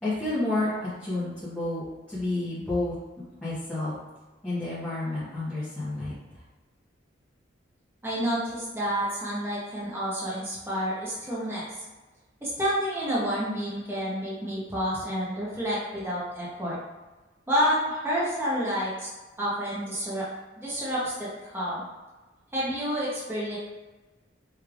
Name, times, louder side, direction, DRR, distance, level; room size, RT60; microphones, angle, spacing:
voice 1, 0.0-3.0 3.4-3.9 4.4-6.1, left 2 dB, 5° left, -13 dB, 1.2 m, -30 dB
voice 2, 8.0-11.7 12.4-16.8 17.5-19.1 19.4-20.3 20.6-21.9 22.5-23.6, equal, 10° right, -8 dB, 0.9 m, -29 dB
4.8 x 3.3 x 2.4 m, 1.2 s
head